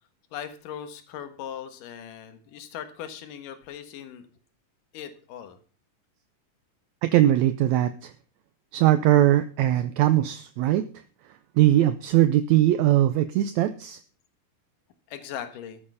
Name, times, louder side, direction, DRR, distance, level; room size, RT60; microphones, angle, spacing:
voice 1, 0.3-4.3 4.9-5.6 15.1-15.8, left 9 dB, 75° left, 9 dB, 3.0 m, -39 dB
voice 2, 7.0-8.1 8.7-10.9 11.6-14.0, right 13 dB, 80° right, 11 dB, 1.6 m, -20 dB
13.5 x 8.7 x 5.5 m, 0.39 s
omnidirectional pair, 3.9 m